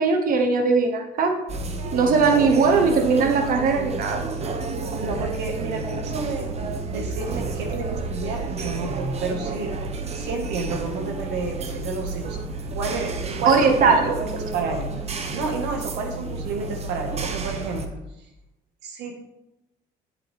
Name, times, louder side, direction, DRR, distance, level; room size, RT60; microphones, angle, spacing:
voice 1, 0.0-1.4 1.9-4.2 13.4-14.2, right 4 dB, 55° right, 4 dB, 1.1 m, -19 dB
sound 1, 1.5-17.9, right 3 dB, 40° right, 0.9 m, -31 dB
voice 2, 5.0-6.5 6.9-9.7 10.1-12.4 12.7-13.1 13.4-14.1 14.5-14.9 15.3-18.0 18.8-19.2, right 4 dB, 85° right, 3 dB, 1.7 m, -30 dB
8.5 x 7.9 x 3.5 m, 0.92 s
cardioid pair, 110°, 17 cm